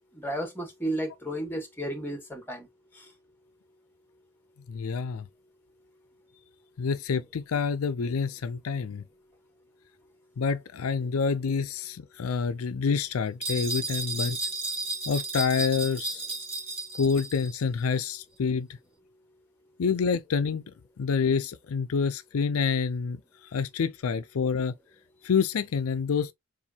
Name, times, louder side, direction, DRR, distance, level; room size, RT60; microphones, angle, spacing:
voice 1, 0.1-2.7 2.9-3.0, right 1 dB, 10° left, 1.7 m, -33 dB
voice 2, 4.7-5.3 6.8-9.0 10.4-14.4 15.1-16.2 17.0-18.7 19.8-20.6 21.0-23.2 23.5-24.7 25.2-26.3, left 5 dB, 85° left, 0.4 m, -27 dB
sound 1, 13.4-17.5, right 3 dB, 25° right, 1.9 m, -33 dB
7.1 x 2.6 x 2.7 m
head